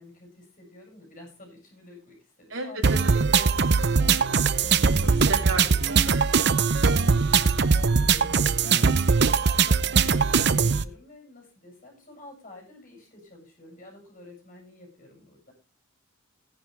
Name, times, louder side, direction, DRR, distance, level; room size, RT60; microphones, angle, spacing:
voice 1, 0.0-4.3 4.5-4.7 6.9-15.5, left 2 dB, 40° left, 1 dB, 7.5 m, -49 dB
voice 2, 2.5-3.6 5.3-6.2, right 3 dB, 75° right, 1 dB, 5.3 m, -34 dB
sound 1, 2.8-10.8, right 5 dB, 55° right, 0.7 m, -21 dB
16.5 x 10.5 x 3.4 m, 0.29 s
head